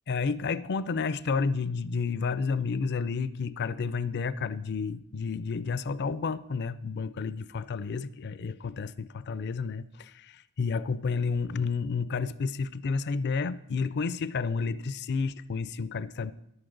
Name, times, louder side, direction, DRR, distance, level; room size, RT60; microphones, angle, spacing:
voice 1, 0.1-16.3, left 5 dB, 50° left, 16 dB, 0.4 m, -31 dB
14.0 x 11.0 x 3.9 m, 0.81 s
head